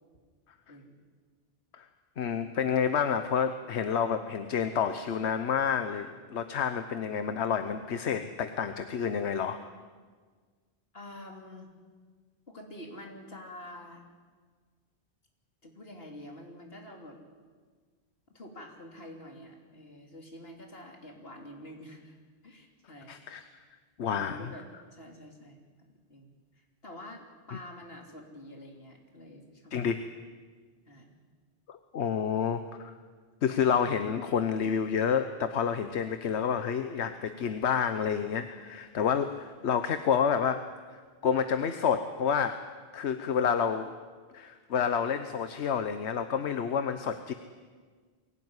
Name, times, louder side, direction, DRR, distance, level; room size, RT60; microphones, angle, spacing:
voice 1, 0.7-1.0 10.9-11.7 12.5-14.0 15.6-17.2 18.3-22.2 22.4-23.1 24.1-25.7 26.1-26.3 26.8-29.7 30.9-31.2, left 1 dB, 60° left, 2 dB, 3.3 m, -47 dB
voice 2, 2.2-9.7 23.1-23.4 24.0-24.4 29.7-30.1 31.7-32.9 33.4-42.6 42.9-43.9 44.3-47.3, left 7 dB, 80° left, 9 dB, 1.2 m, -29 dB
23.0 x 17.0 x 9.7 m, 1.5 s
omnidirectional pair, 1.1 m